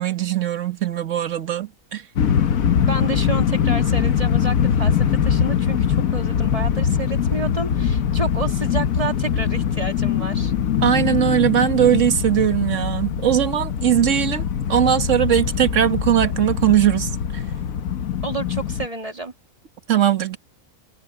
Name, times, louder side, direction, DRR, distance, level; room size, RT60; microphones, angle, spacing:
voice 1, 0.0-2.0 10.8-14.4 14.7-17.4 19.9-20.4, right 10 dB, 60° right, 1.7 m, -20 dB
sound 1, 2.2-18.9, left 8 dB, 75° left, 1.4 m, -22 dB
voice 2, 2.9-10.5 18.2-19.3, right 3 dB, 25° right, 2.9 m, -30 dB
omnidirectional pair, 1.5 m